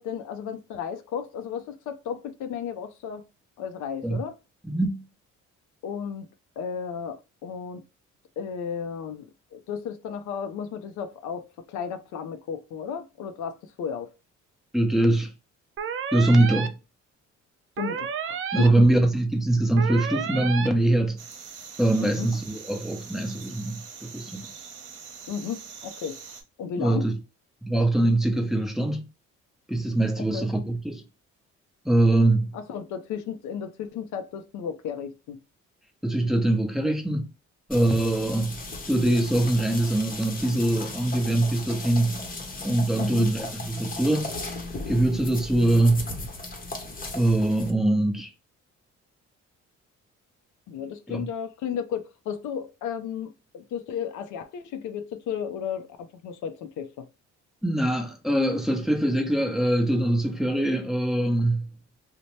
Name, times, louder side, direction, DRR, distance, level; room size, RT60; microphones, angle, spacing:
voice 1, 0.0-3.2 3.6-4.4 5.8-6.3 6.6-7.8 8.4-14.1 17.8-18.9 22.0-22.3 25.3-26.2 26.6-27.1 30.2-30.5 32.5-35.4 43.0-43.3 50.7-57.0, left 7 dB, 75° left, 0.5 m, -34 dB
voice 2, 4.7-5.0 14.7-15.3 16.1-16.7 18.5-21.2 21.8-24.5 26.8-27.2 27.6-29.1 29.7-31.0 31.8-32.5 36.0-37.3 37.7-38.6 38.9-42.2 42.6-44.3 44.9-46.1 47.1-48.3 51.1-51.3 57.6-61.7, right 1 dB, ahead, 0.7 m, -23 dB
sound 1, 15.8-16.7 17.8-18.7 19.8-20.7, right 7 dB, 45° right, 0.4 m, -31 dB
sound 2, 21.2-26.4, right 6 dB, 80° right, 0.9 m, -43 dB
sound 3, 37.7-47.7, left 2 dB, 30° left, 0.8 m, -36 dB
2.8 x 2.1 x 3.0 m
cardioid pair, 90°, 30 cm